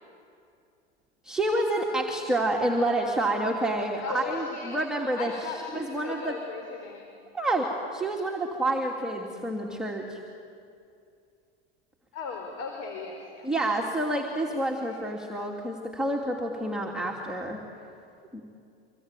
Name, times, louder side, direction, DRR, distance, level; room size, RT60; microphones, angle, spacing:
voice 1, 1.2-5.3 5.7-6.4 7.3-10.2 13.4-17.6 18.3-18.4, right 1 dB, ahead, -2 dB, 2.8 m, -28 dB
voice 2, 4.0-4.8 5.2-7.1 12.1-13.5 14.1-15.0, left 5 dB, 50° left, 3 dB, 4.5 m, -38 dB
26.0 x 22.5 x 9.1 m, 2.5 s
hypercardioid pair, 100°, 32 cm